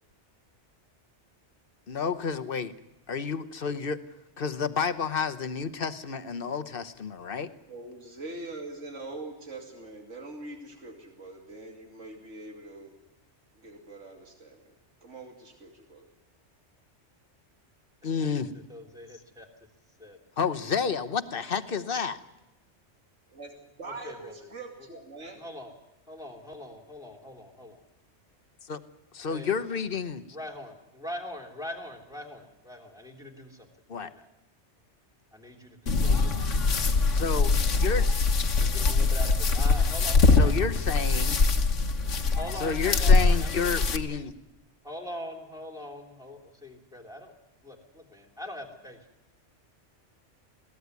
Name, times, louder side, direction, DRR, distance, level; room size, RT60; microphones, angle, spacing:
voice 1, 1.9-2.7 3.1-4.0 4.4-7.5 18.0-18.6 20.4-22.2 28.6-28.8 29.1-30.2 33.9-34.1 37.1-38.3 40.2-41.4 42.6-44.3, left 6 dB, 50° left, 12 dB, 1.2 m, -30 dB
voice 2, 7.7-12.9 13.5-14.7 15.0-16.1 23.3-25.4, right 2 dB, 85° right, 4 dB, 2.9 m, -43 dB
voice 3, 18.2-19.5 20.0-20.2 23.8-24.3 25.4-25.7 26.1-27.8 29.3-29.6 30.3-34.3 35.3-36.5 38.5-40.5 42.4-43.8 44.8-47.3 47.6-49.0, left 1 dB, 5° right, 1 dB, 3.3 m, -42 dB
sound 1, 35.9-44.0, left 4 dB, 85° left, 1.7 m, -23 dB
21.5 x 17.0 x 9.5 m, 0.98 s
omnidirectional pair, 1.2 m